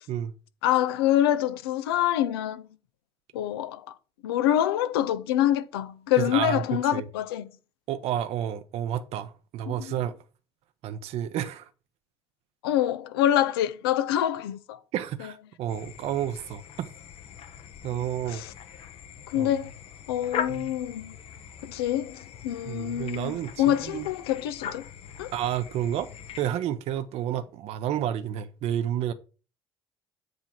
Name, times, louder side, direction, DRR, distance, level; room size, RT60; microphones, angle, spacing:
voice 1, 0.6-2.6 3.3-3.9 4.2-7.5 9.7-10.0 12.6-14.8 15.2-15.3 17.9-18.5 19.3-19.7 20.1-21.1 21.6-24.8 25.2-25.3, left 12 dB, 75° left, 0.6 m, -26 dB
voice 2, 6.2-7.0 7.9-10.1 10.8-11.7 14.9-16.9 17.8-18.4 19.3-19.5 20.5-20.7 22.7-24.1 25.3-26.1 26.4-29.1, right 10 dB, 55° right, 0.7 m, -30 dB
sound 1, 15.7-26.5, left 8 dB, 50° left, 0.9 m, -41 dB
7.9 x 3.4 x 5.9 m
hypercardioid pair, 60°, 13 cm